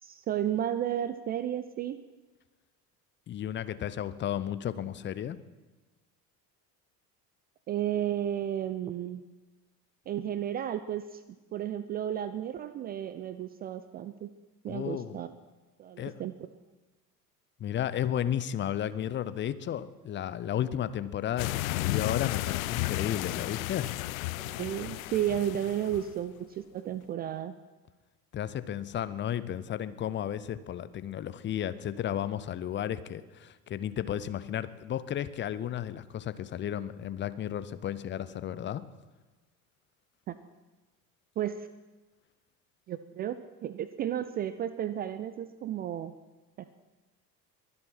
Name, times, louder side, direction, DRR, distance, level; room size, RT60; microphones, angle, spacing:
voice 1, 0.0-2.0 7.7-9.2 10.1-11.2 11.5-14.3 14.6-15.3 15.8-16.5 24.4-27.5 40.3-40.4 41.4-41.7 42.9-46.1, right 10 dB, 20° right, 13 dB, 0.3 m, -33 dB
voice 2, 3.3-5.4 14.7-15.2 16.0-16.2 17.6-23.9 28.3-38.8, left 10 dB, 25° left, 15 dB, 0.6 m, -33 dB
sound 1, 21.4-26.2, left 19 dB, 60° left, 0.5 m, -33 dB
22.5 x 7.8 x 5.8 m, 1.2 s
figure-of-eight pair, 65°, 47 cm